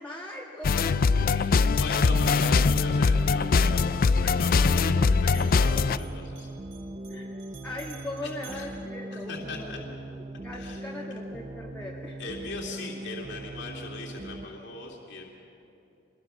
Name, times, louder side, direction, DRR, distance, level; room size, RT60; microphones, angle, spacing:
voice 1, 0.0-1.6 7.1-9.8 10.1-12.2, left 1 dB, 10° left, -2 dB, 1.6 m, -40 dB
sound 1, 0.6-6.0, left 4 dB, 50° left, 0.4 m, -22 dB
sound 2, 0.9-14.5, right 1 dB, 35° right, 0.7 m, -40 dB
voice 2, 1.7-6.5 8.2-8.7 9.1-9.8 10.5-10.9 12.2-15.3, left 3 dB, 65° left, -1 dB, 2.4 m, -38 dB
Bell, 5.2-9.7, right 8 dB, 75° right, 3.7 m, -53 dB
26.5 x 21.0 x 6.0 m, 2.8 s
head